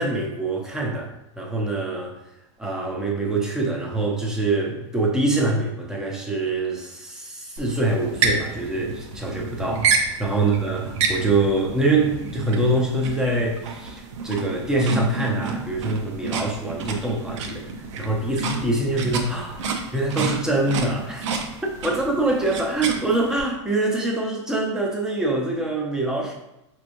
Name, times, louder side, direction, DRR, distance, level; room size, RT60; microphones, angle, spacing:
voice 1, 0.0-2.2 2.6-21.3 21.8-26.3, right 2 dB, 5° right, -2 dB, 0.7 m, -24 dB
sound 1, 7.6-23.4, right 4 dB, 70° right, 0.7 m, -29 dB
4.5 x 3.1 x 2.6 m, 0.90 s
supercardioid pair, 145°, 16 cm